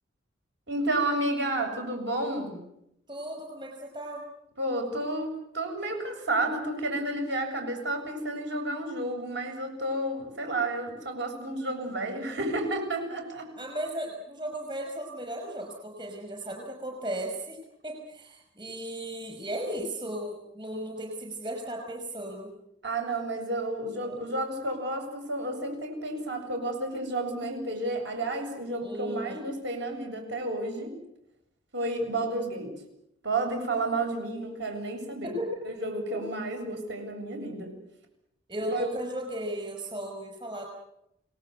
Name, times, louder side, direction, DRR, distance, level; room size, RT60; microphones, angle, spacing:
voice 1, 0.7-2.6 4.6-13.5 22.8-30.9 31.7-32.7 33.2-35.4 35.7-37.7 38.7-38.9, right 2 dB, 60° right, 4 dB, 7.8 m, -31 dB
voice 2, 3.1-4.2 13.6-22.5 24.0-24.2 28.8-29.5 35.2-35.5 36.1-36.2 38.5-40.7, right 1 dB, 25° right, 2 dB, 5.4 m, -36 dB
29.0 x 19.0 x 8.2 m, 0.81 s
head